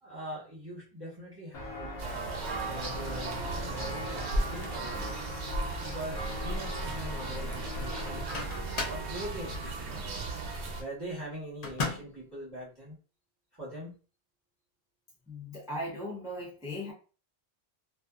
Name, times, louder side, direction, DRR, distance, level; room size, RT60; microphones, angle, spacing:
voice 1, 0.0-10.2 10.8-12.9 13.6-14.0, right 1 dB, 20° right, -9 dB, 1.2 m, -43 dB
Walk footsteps, 1.5-8.2, left 1 dB, 70° left, 0.9 m, -38 dB
sound 1, 2.0-10.8, right 3 dB, 85° right, 0.9 m, -37 dB
Microwave oven, 8.1-9.1 11.6-12.2, left 4 dB, 45° left, 0.6 m, -35 dB
voice 2, 15.3-16.9, left 1 dB, 5° right, -7 dB, 0.8 m, -38 dB
2.5 x 2.4 x 2.4 m, 0.36 s
omnidirectional pair, 1.1 m